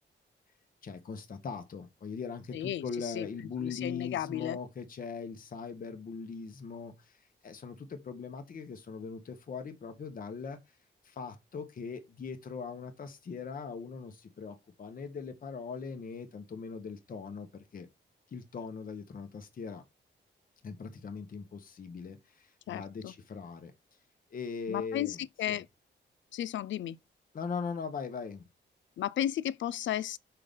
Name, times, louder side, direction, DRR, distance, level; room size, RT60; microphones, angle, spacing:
voice 1, 0.8-10.6 11.0-17.9 18.3-19.8 20.6-23.7 24.3-25.2 25.5-25.6 27.3-28.5, left 5 dB, 45° left, 1.1 m, -40 dB
voice 2, 2.5-3.3 3.6-4.6 22.7-23.1 24.7-25.6 26.3-27.0 29.0-30.2, left 11 dB, 75° left, 0.4 m, -34 dB
5.6 x 3.8 x 5.2 m
wide cardioid pair, 130°, 19 cm